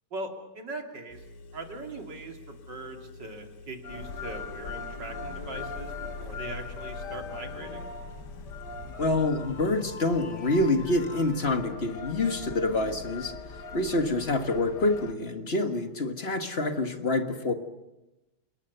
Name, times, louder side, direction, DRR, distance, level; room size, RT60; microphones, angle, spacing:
voice 1, 0.1-1.2 1.5-7.9, right 2 dB, 55° right, 3 dB, 3.3 m, -40 dB
Engine, 1.1-11.6, left 3 dB, 75° left, 2.3 m, -49 dB
sound 1, 3.8-15.1, left 4 dB, 55° left, 2.1 m, -40 dB
voice 2, 9.0-13.3 13.7-17.5, left 2 dB, 30° left, 7 dB, 1.7 m, -27 dB
30.0 x 19.5 x 6.8 m, 1.0 s
omnidirectional pair, 2.3 m